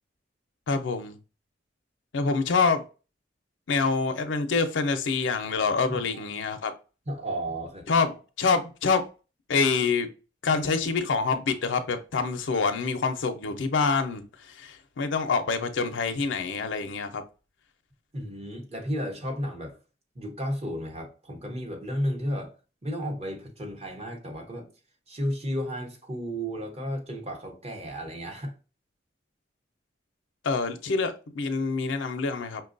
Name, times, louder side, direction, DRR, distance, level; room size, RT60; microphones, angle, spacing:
voice 1, 0.7-1.2 2.1-2.8 3.7-6.7 7.9-9.0 9.5-10.1 10.4-17.2 30.4-32.6, left 4 dB, 90° left, 0.5 m, -26 dB
voice 2, 5.9-6.2 7.1-7.9 18.1-19.8 20.1-22.5 22.8-24.7 25.1-28.5, equal, 35° right, 0.9 m, -33 dB
5.6 x 2.2 x 2.5 m
head